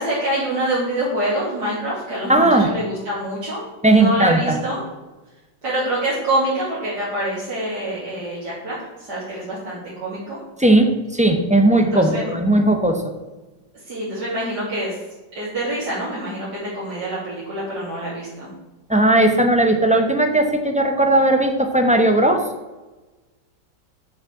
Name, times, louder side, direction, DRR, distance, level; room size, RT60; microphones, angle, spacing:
voice 1, 0.0-3.6 3.9-4.8 5.6-10.4 11.7-12.3 13.9-15.0 15.4-18.5, right 1 dB, 60° right, -10 dB, 3.7 m, -26 dB
voice 2, 2.3-2.7 3.8-4.6 10.6-13.0 18.9-22.4, right 1 dB, 5° right, 5 dB, 0.7 m, -17 dB
7.6 x 6.5 x 7.3 m, 1.1 s
omnidirectional pair, 2.0 m